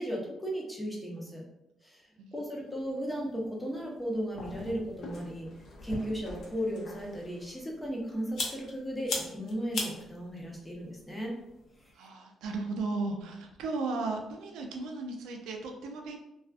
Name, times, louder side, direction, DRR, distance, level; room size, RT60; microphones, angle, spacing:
voice 1, 0.0-1.4 1.8-5.5 5.8-11.3 11.8-12.1, equal, 10° left, -2 dB, 0.7 m, -36 dB
sound 1, 2.7-11.9, left 3 dB, 65° left, 0.6 m, -42 dB
voice 2, 11.9-16.2, right 3 dB, 90° right, 2 dB, 0.3 m, -35 dB
2.4 x 2.3 x 2.3 m, 0.89 s
cardioid pair, 90°, 0 cm